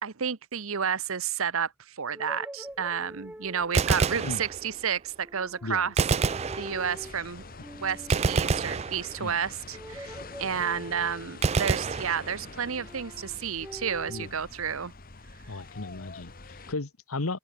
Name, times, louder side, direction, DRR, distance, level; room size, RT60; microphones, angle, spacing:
voice 1, 0.0-5.9 6.6-7.4 7.7-14.9, right 7 dB, 70° right, 0.9 m, -31 dB
sound 1, 2.1-3.9 5.2-6.0 6.2-7.2 7.5-8.7 9.7-11.5 12.6-14.3, right 1 dB, 5° right, 1.3 m, -45 dB
Gunshot gunfire, 3.6-5.0 6.0-7.2 8.1-9.5 11.4-12.8, right 4 dB, 30° right, 0.4 m, -28 dB
sound 2, 6.6-16.7, left 3 dB, 45° left, 1.7 m, -46 dB
voice 2, 15.5-17.4, left 3 dB, 80° left, 1.4 m, -35 dB
open air
head